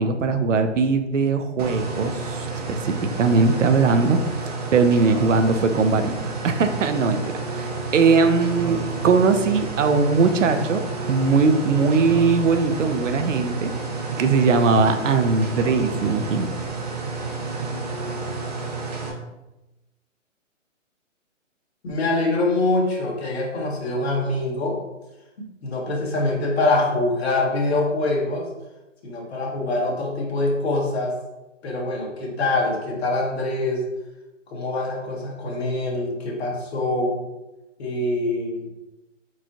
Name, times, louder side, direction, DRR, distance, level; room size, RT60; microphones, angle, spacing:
voice 1, 0.0-4.2 4.4-7.2 7.5-13.7 14.2-16.5, right 4 dB, 75° right, 8 dB, 0.7 m, -20 dB
sound 1, 1.6-19.1, right 4 dB, 30° right, 0.6 m, -30 dB
voice 2, 21.8-24.8 25.4-28.5 29.0-31.1 31.6-33.8 34.5-37.2 37.8-38.7, left 2 dB, 55° left, -2 dB, 1.4 m, -24 dB
4.7 x 3.9 x 2.9 m, 1.0 s
hypercardioid pair, 155°, 39 cm